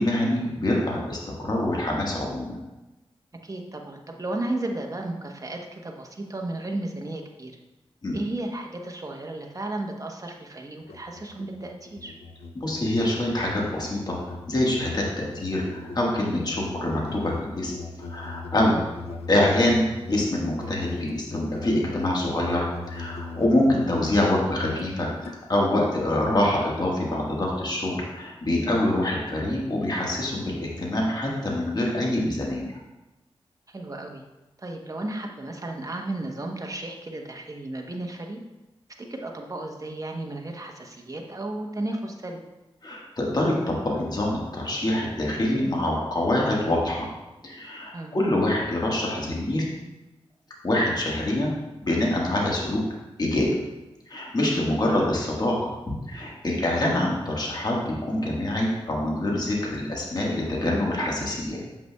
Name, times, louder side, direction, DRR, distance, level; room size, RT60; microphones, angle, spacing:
voice 1, 0.0-2.6 8.0-8.2 12.5-14.2 14.5-17.7 18.0-18.8 19.3-32.8 42.8-47.1 47.4-49.7 50.6-52.8 53.2-53.6 54.1-55.7 56.1-61.6, left 1 dB, 40° left, -3 dB, 1.5 m, -25 dB
voice 2, 3.4-7.5 8.1-12.2 18.7-18.9 33.7-34.2 34.6-38.4 39.0-42.4 47.9-48.2 54.6-54.8, right 2 dB, 35° right, 2 dB, 0.9 m, -34 dB
Musical instrument, 10.8-25.4, left 3 dB, 80° left, 0.5 m, -39 dB
7.6 x 5.7 x 2.3 m, 1.0 s
cardioid pair, 60°, 10 cm